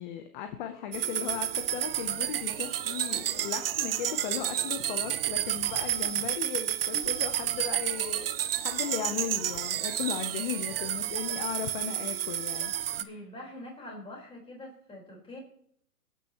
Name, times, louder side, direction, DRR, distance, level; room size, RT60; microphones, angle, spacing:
voice 1, 0.0-13.1, left 9 dB, 30° left, 8 dB, 0.8 m, -37 dB
sound 1, 0.9-13.0, right 11 dB, 40° right, 0.5 m, -31 dB
voice 2, 13.0-15.4, left 1 dB, 10° left, -1 dB, 4.4 m, -44 dB
26.0 x 9.3 x 3.0 m, 0.68 s
hypercardioid pair, 140°, 48 cm